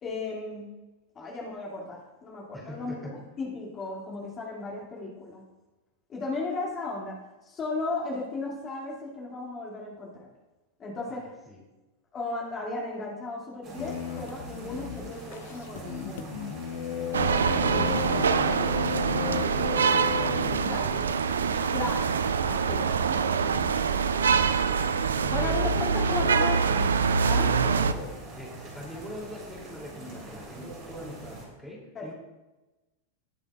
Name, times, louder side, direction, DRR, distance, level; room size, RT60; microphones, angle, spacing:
voice 1, 0.0-0.8 1.1-5.4 6.1-10.3 10.8-11.3 12.1-16.3 17.7-18.2 20.5-20.9 21.7-22.1 22.4-23.7 24.3-24.6 25.3-26.9 27.2-27.5 28.9-29.1 31.9-32.1, left 3 dB, 25° left, -4 dB, 2.3 m, -35 dB
voice 2, 2.5-3.1 11.1-11.6 17.4-21.4 24.1-24.8 25.1-25.7 27.4-32.1, left 1 dB, ahead, -3 dB, 2.8 m, -42 dB
sound 1, 13.6-31.5, right 2 dB, 35° right, 3.6 m, -44 dB
sound 2, 13.8-20.8, left 8 dB, 55° left, 0.9 m, -34 dB
sound 3, 17.1-27.9, right 6 dB, 70° right, 0.4 m, -25 dB
19.0 x 6.9 x 2.4 m, 1.1 s
figure-of-eight pair, 90°, 0 cm